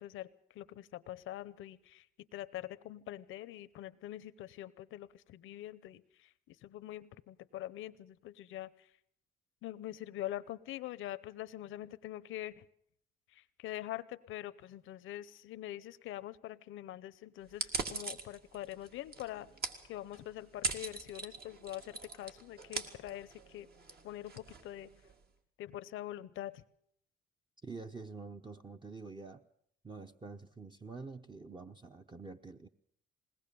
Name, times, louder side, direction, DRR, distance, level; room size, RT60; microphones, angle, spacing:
voice 1, 0.0-2.1 2.3-8.9 9.6-12.7 13.3-19.5 19.9-23.7 24.0-24.9 25.6-26.6, left 13 dB, 85° left, 16 dB, 0.8 m, -44 dB
sound 1, 17.5-25.2, right 3 dB, 55° right, 2.2 m, -42 dB
voice 2, 27.6-29.4 29.8-32.7, right 4 dB, 25° right, 6 dB, 0.9 m, -47 dB
21.0 x 18.5 x 6.9 m, 0.68 s
cardioid pair, 90°, 20 cm